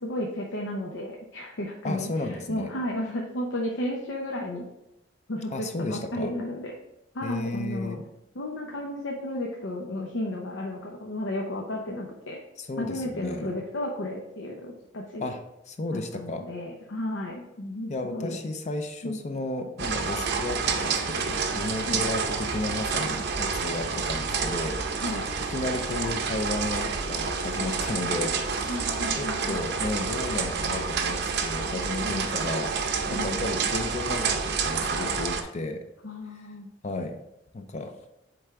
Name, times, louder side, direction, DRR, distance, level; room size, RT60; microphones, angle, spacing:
voice 1, 0.0-4.7 5.3-6.7 7.1-8.0 8.3-12.4 12.8-15.3 15.9-18.4 19.0-19.2 21.8-22.1 25.0-25.3 28.7-29.6 32.0-32.3 33.1-33.4 36.0-36.7, left 1 dB, 85° left, 0 dB, 0.8 m, -33 dB
voice 2, 1.8-2.7 5.5-6.3 7.2-8.0 12.6-13.6 15.2-15.4 15.7-16.5 17.9-25.0 25.5-28.8 29.2-35.8 36.8-37.2 37.5-38.0, left 2 dB, 40° left, 6 dB, 0.5 m, -33 dB
sound 1, 19.8-35.4, right 5 dB, 60° right, 0.6 m, -29 dB
7.8 x 3.4 x 3.6 m, 0.88 s
head